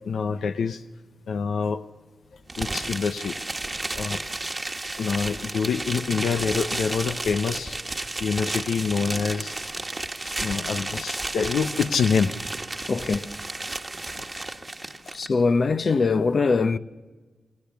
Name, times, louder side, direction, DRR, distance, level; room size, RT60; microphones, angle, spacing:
voice 1, 0.0-0.8 1.3-1.8 2.6-3.4 3.9-4.2 5.0-9.6 10.2-12.3 14.2-14.3, left 6 dB, 85° left, 0.8 m, -26 dB
sound 1, 2.5-15.3, right 2 dB, 20° right, 1.4 m, -32 dB
voice 2, 12.9-13.3 15.1-16.8, left 4 dB, 50° left, 0.9 m, -22 dB
27.5 x 20.5 x 7.0 m
cardioid pair, 90°, 0 cm